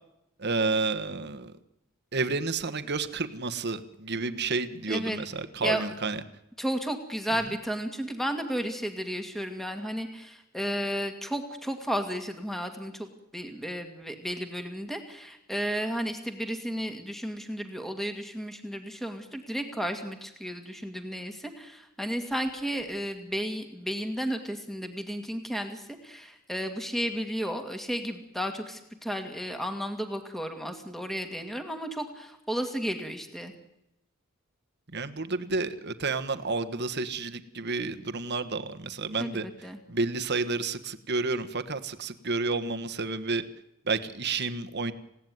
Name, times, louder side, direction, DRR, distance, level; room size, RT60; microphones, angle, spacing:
voice 1, 0.4-1.5 2.1-6.2 7.3-7.4 34.9-39.5 39.9-43.4 43.8-44.9, right 3 dB, 50° right, 9 dB, 1.5 m, -30 dB
voice 2, 4.9-5.2 5.6-5.9 6.6-13.1 13.3-33.5 39.2-39.8, equal, ahead, 5 dB, 2.1 m, -33 dB
28.0 x 17.0 x 9.5 m, 0.90 s
head